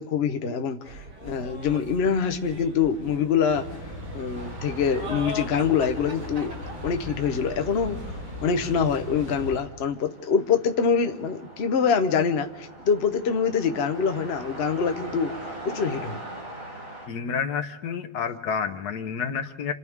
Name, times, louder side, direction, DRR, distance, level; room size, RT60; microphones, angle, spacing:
voice 1, 0.0-3.7 4.1-6.5 6.8-8.0 8.4-15.3 15.6-16.2, left 6 dB, 45° left, 1.0 m, -25 dB
sound 1, 0.8-9.5, right 1 dB, 70° right, 3.8 m, -40 dB
sound 2, 3.5-9.6, left 1 dB, 85° right, 4.3 m, -38 dB
sound 3, 4.3-17.1, right 1 dB, 35° right, 5.5 m, -43 dB
voice 2, 17.1-19.7, left 6 dB, 70° left, 1.4 m, -29 dB
28.5 x 26.0 x 3.6 m
omnidirectional pair, 1.8 m